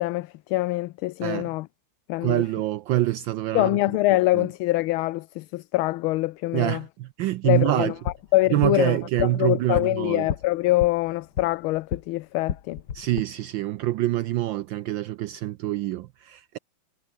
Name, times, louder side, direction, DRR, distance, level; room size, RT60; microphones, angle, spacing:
voice 1, 0.0-1.7 2.1-2.4 3.5-6.8 7.4-7.9 8.3-12.8, left 18 dB, 80° left, 1.4 m, -24 dB
voice 2, 1.2-1.5 2.2-3.8 4.3-4.5 6.5-7.9 8.5-10.3 12.9-16.6, right 15 dB, 75° right, 1.2 m, -26 dB
sound 1, 7.8-12.1 12.4-13.2, left 7 dB, 55° left, 2.0 m, -34 dB
omnidirectional pair, 2.4 m